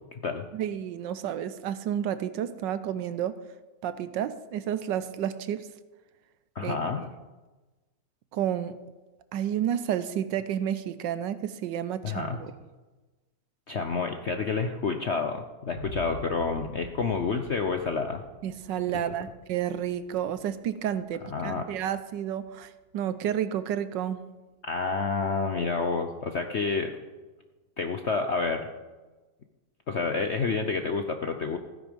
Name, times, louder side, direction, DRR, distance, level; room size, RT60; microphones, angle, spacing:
voice 1, 0.5-3.4 3.8-5.7 6.6-7.1 8.3-8.8 9.3-12.5 18.4-24.2, right 10 dB, 75° right, 13 dB, 1.3 m, -31 dB
voice 2, 6.5-7.1 12.0-12.4 13.7-18.2 21.3-21.7 24.6-26.9 27.8-28.7 29.9-31.6, left 4 dB, 55° left, 6 dB, 0.7 m, -29 dB
sound 1, 15.7-23.1, right 3 dB, 60° right, 2.4 m, -46 dB
16.0 x 9.8 x 5.2 m, 1.2 s
omnidirectional pair, 2.1 m